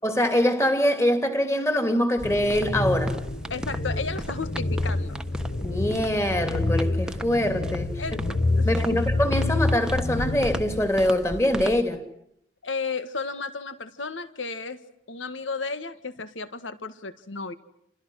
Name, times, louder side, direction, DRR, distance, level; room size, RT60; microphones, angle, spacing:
voice 1, 0.0-3.2 5.6-7.9 8.6-12.0, left 1 dB, 15° left, 2.8 m, -24 dB
sound 1, 2.2-10.9, left 2 dB, 50° left, 1.5 m, -28 dB
sound 2, 2.2-11.8, equal, 5° right, 1.2 m, -38 dB
voice 2, 3.5-5.2 8.0-8.2 8.5-9.0 12.6-14.8 15.1-17.5, left 4 dB, 85° left, 1.7 m, -33 dB
29.5 x 29.0 x 6.4 m
head